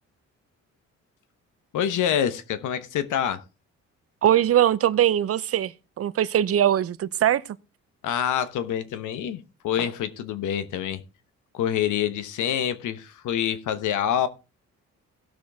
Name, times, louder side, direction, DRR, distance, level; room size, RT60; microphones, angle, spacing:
voice 1, 1.7-3.4 8.0-11.0 11.5-14.3, left 9 dB, 80° left, 1.2 m, -26 dB
voice 2, 4.2-7.4, right 11 dB, 50° right, 0.6 m, -21 dB
17.0 x 6.2 x 3.6 m
cardioid pair, 90°, 30 cm